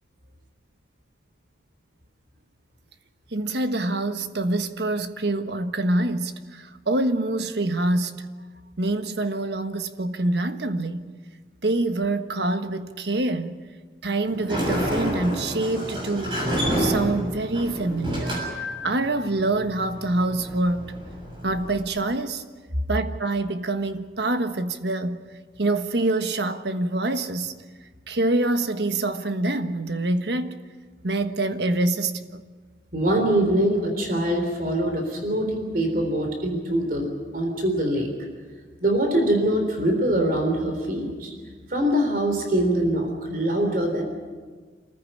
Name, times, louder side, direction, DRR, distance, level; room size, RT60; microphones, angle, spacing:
voice 1, 3.3-8.3 8.8-11.1 11.6-13.6 14.0-16.5 16.8-18.4 18.8-20.9 21.4-22.4 22.9-25.2 25.6-27.5 28.1-30.6 31.0-32.4, right 2 dB, 75° right, 1.3 m, -25 dB
Sliding door, 14.3-21.8, equal, 30° right, 6.9 m, -29 dB
voice 2, 32.9-37.1 37.3-38.1 38.8-41.3 41.7-44.0, right 1 dB, 50° right, 3.7 m, -23 dB
27.0 x 15.0 x 10.0 m
head